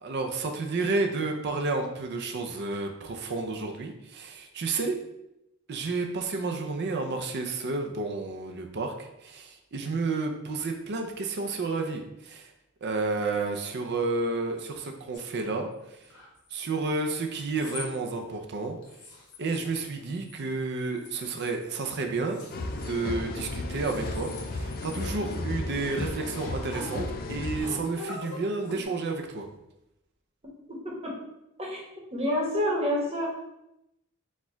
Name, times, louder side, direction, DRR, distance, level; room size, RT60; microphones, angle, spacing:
voice 1, 0.0-5.0 5.7-12.5 12.8-15.7 16.5-18.8 19.4-22.4 22.9-29.5, right 3 dB, 50° right, 4 dB, 0.5 m, -31 dB
sound 1, 15.1-15.2 15.9-16.5 17.4-17.9 18.3-18.4 18.8-19.6 19.8-20.5 20.8-21.7 22.3-23.3 23.7-24.4 24.7-25.5 26.4-27.0 27.2-28.8, left 2 dB, 85° left, 1.1 m, -43 dB
sound 2, 22.5-27.6, left 2 dB, 45° left, 0.4 m, -34 dB
voice 2, 32.1-33.4, left 1 dB, 30° right, -3 dB, 1.1 m, -28 dB
4.3 x 2.4 x 4.4 m, 0.87 s
head